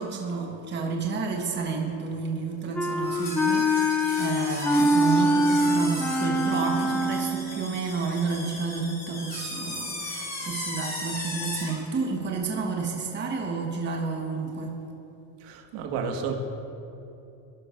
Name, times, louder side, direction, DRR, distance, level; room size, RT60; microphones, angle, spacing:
voice 1, 0.0-14.8, right 4 dB, 25° right, 1 dB, 1.3 m, -30 dB
Wind instrument woodwind instrument, 2.8-7.6, equal, 5° left, 0.4 m, -24 dB
sound 1, 3.0-11.8, left 2 dB, 20° left, 2.7 m, -36 dB
voice 2, 15.4-16.3, right 6 dB, 65° right, 2 dB, 1.8 m, -31 dB
19.0 x 11.5 x 2.6 m, 2.8 s
supercardioid pair, 125°, 44 cm